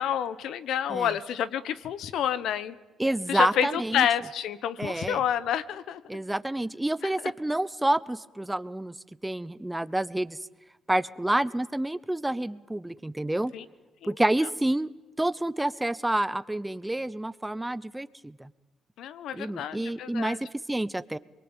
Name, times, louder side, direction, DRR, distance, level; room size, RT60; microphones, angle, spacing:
voice 1, 0.0-2.7 3.3-6.0 13.5-13.6 14.0-14.1 19.0-20.4, left 9 dB, 80° left, 16 dB, 1.3 m, -29 dB
voice 2, 3.0-4.1 4.8-5.2 6.1-8.9 9.2-10.4 10.9-13.5 14.0-14.9 15.2-18.5 19.3-21.2, right 1 dB, 10° right, 17 dB, 0.9 m, -28 dB
28.5 x 22.5 x 9.1 m, 1.1 s
cardioid pair, 90°, 0 cm